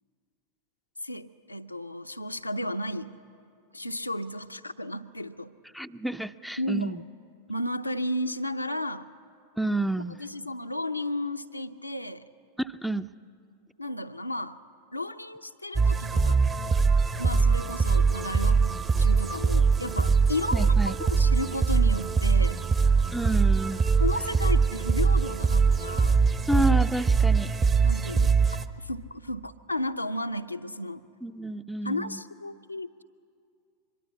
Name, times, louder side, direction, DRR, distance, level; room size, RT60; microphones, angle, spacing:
voice 1, 1.0-3.2 3.7-5.5 6.6-7.0 7.5-9.1 10.2-12.3 13.8-14.6 14.9-16.4 17.2-22.6 24.0-26.2 27.8-31.0 31.8-33.0, left 1 dB, 85° left, 7 dB, 0.7 m, -33 dB
voice 2, 5.7-7.0 9.6-10.2 12.6-13.1 20.5-21.0 23.1-23.8 26.5-27.5 31.2-32.2, right 1 dB, ahead, 13 dB, 0.6 m, -29 dB
sound 1, 15.8-28.7, right 5 dB, 20° right, 0.9 m, -22 dB
24.0 x 22.0 x 8.3 m, 2.4 s
figure-of-eight pair, 90°, 0 cm